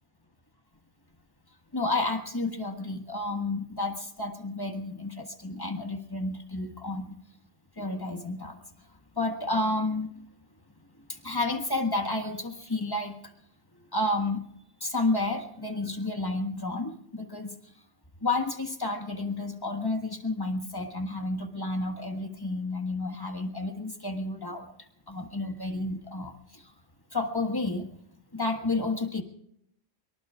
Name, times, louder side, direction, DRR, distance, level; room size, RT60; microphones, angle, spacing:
voice 1, 1.7-7.1 7.8-8.5 9.2-10.1 11.1-13.3 13.9-14.4 14.8-17.5 18.2-24.7 25.1-26.6 27.1-27.9 28.3-29.2, left 2 dB, 20° left, 5 dB, 1.5 m, -31 dB
24.0 x 23.5 x 2.5 m, 0.74 s
omnidirectional pair, 1.3 m